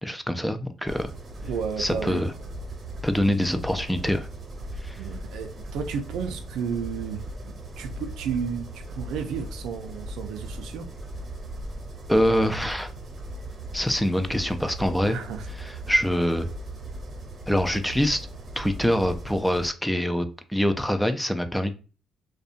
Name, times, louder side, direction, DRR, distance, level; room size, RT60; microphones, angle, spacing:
voice 1, 0.0-1.1 1.8-2.3 3.0-4.3 4.8-5.0 12.1-12.9 13.7-15.2 15.6-16.5 17.5-18.3 18.6-21.7, equal, 5° left, 0.3 m, -24 dB
sound 1, 0.9-19.7, right 1 dB, 45° right, 0.7 m, -38 dB
voice 2, 1.4-2.2 5.0-10.9 15.0-15.5, right 7 dB, 85° right, 0.4 m, -33 dB
2.6 x 2.2 x 2.4 m
cardioid pair, 90°, 0 cm